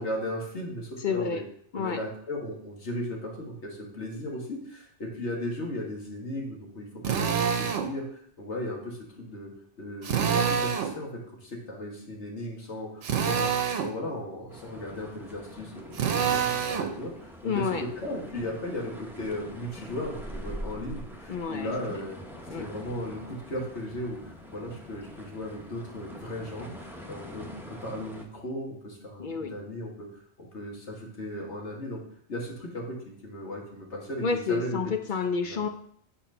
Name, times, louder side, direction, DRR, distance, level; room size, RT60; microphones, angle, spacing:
voice 1, 0.0-1.4 1.7-9.5 9.8-13.5 13.8-22.2 22.6-30.1 30.4-32.0 32.3-34.9 35.4-35.6, left 1 dB, 70° left, -1 dB, 2.1 m, -36 dB
voice 2, 1.0-1.4 1.7-2.0 17.4-17.8 21.3-21.7 22.5-22.6 29.2-29.5 34.2-35.7, left 5 dB, 50° left, 6 dB, 0.7 m, -29 dB
Drill, 7.0-7.9 10.0-10.9 13.0-13.9 15.9-16.9, right 7 dB, 80° right, 1.1 m, -26 dB
sound 1, 14.5-28.2, equal, ahead, 0.8 m, -44 dB
7.2 x 4.5 x 5.5 m, 0.64 s
omnidirectional pair, 1.2 m